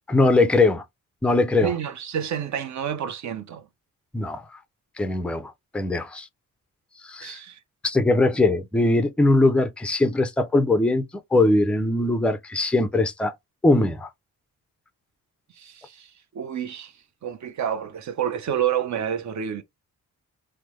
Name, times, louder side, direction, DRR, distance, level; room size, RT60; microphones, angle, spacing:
voice 1, 0.1-0.8 1.2-1.7 4.1-4.4 5.0-6.3 7.0-7.4 7.8-13.3 13.6-14.1, left 2 dB, 5° left, 0.4 m, -21 dB
voice 2, 1.5-3.6 7.2-7.6 15.5-16.9 17.2-19.6, right 9 dB, 55° right, 0.7 m, -29 dB
3.3 x 2.0 x 3.0 m
cardioid pair, 115°, 34 cm